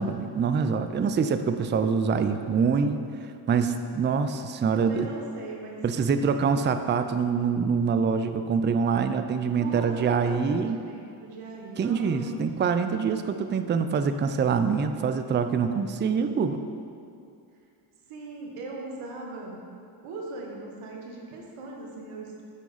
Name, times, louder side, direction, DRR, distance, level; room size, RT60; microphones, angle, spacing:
voice 1, 0.0-3.0 3.5-5.1 5.8-10.8 11.8-16.6, right 5 dB, 25° right, 9 dB, 0.4 m, -25 dB
voice 2, 4.7-5.8 9.6-12.4 14.3-15.1 15.8-16.8 18.1-19.6 20.0-22.4, right 2 dB, 85° right, -1 dB, 1.2 m, -40 dB
7.5 x 4.7 x 4.0 m, 2.4 s
supercardioid pair, 50°, 50 cm